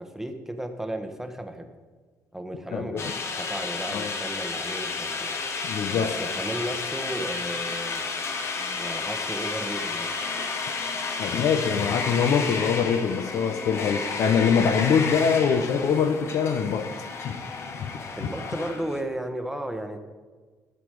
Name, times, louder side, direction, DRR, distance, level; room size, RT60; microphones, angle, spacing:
voice 1, 0.0-1.7 2.3-5.3 5.9-8.0 8.7-10.1 18.2-20.0, right 1 dB, 5° right, 6 dB, 1.0 m, -34 dB
voice 2, 2.7-3.0 3.9-4.1 5.6-6.1 11.2-16.9 17.2-17.4 17.8-17.9 18.2-18.3, left 6 dB, 70° left, 10 dB, 0.8 m, -23 dB
sound 1, 3.0-19.0, left 4 dB, 45° left, 1.2 m, -32 dB
14.0 x 7.0 x 4.8 m, 1.4 s
cardioid pair, 105°, 6 cm